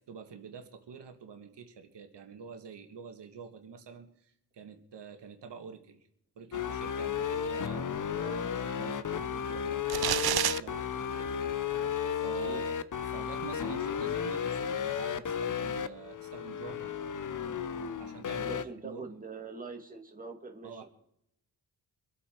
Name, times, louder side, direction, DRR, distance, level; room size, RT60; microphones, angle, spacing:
voice 1, 0.1-6.1 6.4-7.9 8.3-11.4 11.8-12.7 13.0-16.9 18.0-19.1 20.6-20.9, right 6 dB, 80° right, 5 dB, 1.9 m, -47 dB
sound 1, 6.5-18.6, left 7 dB, 50° left, 0.9 m, -33 dB
voice 2, 8.1-8.6 12.4-12.7 18.4-20.9, right 4 dB, 20° right, 2 dB, 2.3 m, -43 dB
sound 2, 9.9-10.6, right 12 dB, 65° right, 0.6 m, -28 dB
25.5 x 8.5 x 4.6 m, 0.72 s
wide cardioid pair, 120°, 41 cm